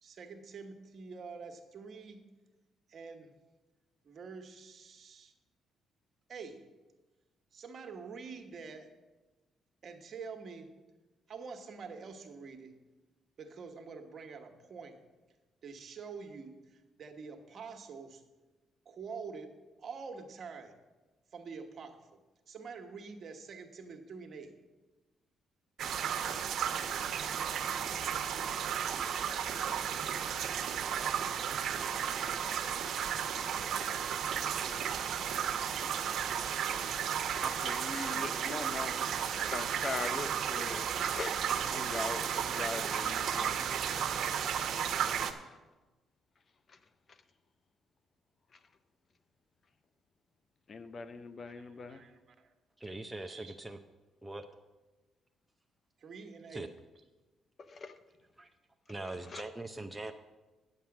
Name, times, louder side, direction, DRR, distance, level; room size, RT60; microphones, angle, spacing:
voice 1, 0.0-2.2 2.9-3.3 4.0-5.3 6.3-6.6 7.5-8.9 9.8-10.7 11.3-12.7 13.4-15.0 15.6-18.2 18.8-19.5 19.8-20.7 21.3-22.0 22.5-24.5 51.4-52.5 53.2-53.6 56.0-56.7, right 5 dB, 50° right, 1.2 m, -47 dB
sound 1, 25.8-45.3, right 8 dB, 70° right, 0.8 m, -33 dB
voice 2, 37.2-39.1 39.5-41.4 41.7-45.0 45.4-45.6 46.7-46.8 47.1-47.2 48.5-48.6 50.7-52.0 57.6-58.0 59.0-59.5, left 4 dB, 45° left, 0.6 m, -42 dB
voice 3, 52.8-53.8 54.2-54.4 56.5-56.7 58.4-58.5 58.9-60.1, right 2 dB, 10° right, 0.6 m, -41 dB
9.5 x 7.3 x 6.0 m
cardioid pair, 90°, 0 cm